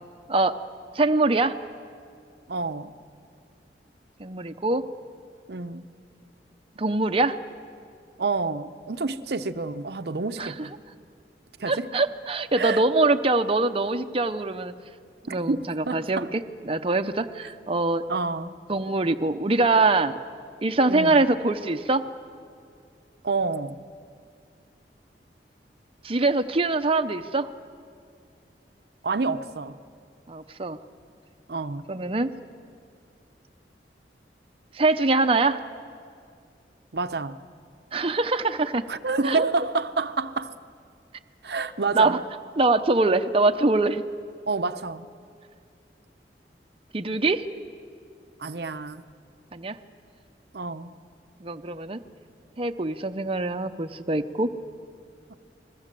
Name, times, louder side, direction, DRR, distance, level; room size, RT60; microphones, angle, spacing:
voice 1, 0.9-1.6 4.2-4.8 6.8-7.4 10.4-10.7 11.7-14.7 15.3-18.0 18.7-20.2 20.6-22.1 26.0-27.5 30.3-30.8 31.9-32.3 34.7-35.6 37.9-38.8 39.2-39.5 41.9-42.2 42.6-44.0 46.9-47.4 49.5-49.8 51.4-52.0 52.6-54.5, right 3 dB, 35° right, 0.7 m, -23 dB
voice 2, 2.5-2.9 5.5-5.9 8.2-10.7 11.6-11.9 12.6-12.8 15.3-16.3 18.1-18.5 20.9-21.2 23.2-23.8 29.0-29.8 31.5-31.9 36.9-37.4 38.9-40.5 41.4-42.2 44.5-45.1 48.4-49.0 50.5-50.9 55.3-55.4, right 3 dB, 65° right, 0.7 m, -28 dB
29.0 x 21.0 x 7.6 m
head